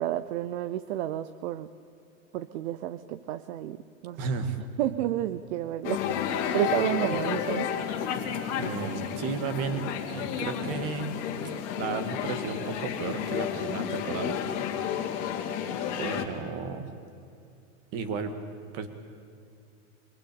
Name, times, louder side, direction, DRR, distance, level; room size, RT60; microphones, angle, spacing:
voice 1, 0.0-1.7 2.3-4.3 4.8-7.7, right 12 dB, 50° right, 12 dB, 0.9 m, -31 dB
voice 2, 4.2-4.6 7.1-7.2 8.6-11.2 11.8-14.4 16.0-16.9 17.9-18.3 18.7-18.9, right 5 dB, 35° right, 8 dB, 2.2 m, -33 dB
sound 1, 5.8-16.3, left 8 dB, 35° left, 2.5 m, -31 dB
24.5 x 20.0 x 8.8 m, 2.5 s
supercardioid pair, 155°, 43 cm